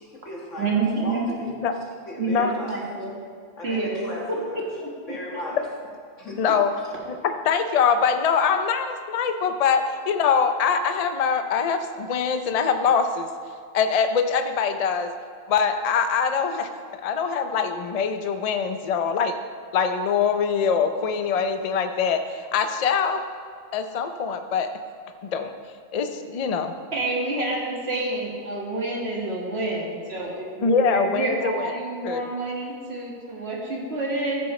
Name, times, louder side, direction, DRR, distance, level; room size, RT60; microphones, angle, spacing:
voice 1, 0.0-1.5 2.1-2.8 3.6-4.6 5.1-5.7 6.2-6.9, left 1 dB, 75° left, -3 dB, 2.2 m, -36 dB
voice 2, 0.6-1.2 2.2-3.1 3.6-4.9 26.9-34.5, right 3 dB, 55° right, -4 dB, 2.0 m, -28 dB
voice 3, 6.4-6.7 7.2-13.3 13.7-15.1 15.5-19.4 19.7-23.2 23.7-24.7 25.2-25.5 25.9-26.7 30.6-31.7 32.0-32.2, left 6 dB, 45° left, 7 dB, 0.5 m, -23 dB
14.0 x 7.6 x 3.1 m, 2.2 s
omnidirectional pair, 1.3 m